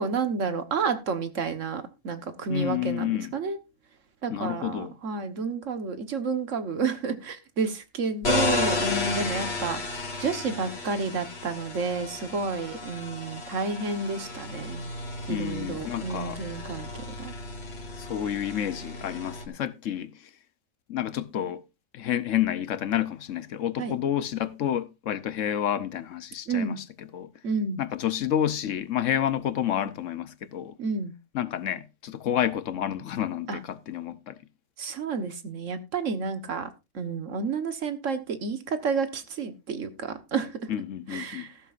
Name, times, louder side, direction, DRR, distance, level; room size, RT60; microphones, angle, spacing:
voice 1, 0.0-3.6 4.2-9.8 10.2-14.8 15.3-17.3 23.8-23.9 26.5-26.8 27.4-27.8 30.8-31.1 33.5-33.6 34.8-36.7 36.9-40.6 41.1-41.5, right 4 dB, 75° right, 1.7 m, -30 dB
voice 2, 2.5-3.3 4.3-4.9 15.3-16.4 18.0-20.1 20.9-21.6 21.9-27.3 27.8-30.7 31.3-34.4 40.7-41.5, left 10 dB, 75° left, 1.2 m, -29 dB
sound 1, 8.2-19.5, left 3 dB, 55° left, 2.1 m, -33 dB
14.0 x 12.5 x 2.5 m
omnidirectional pair, 1.3 m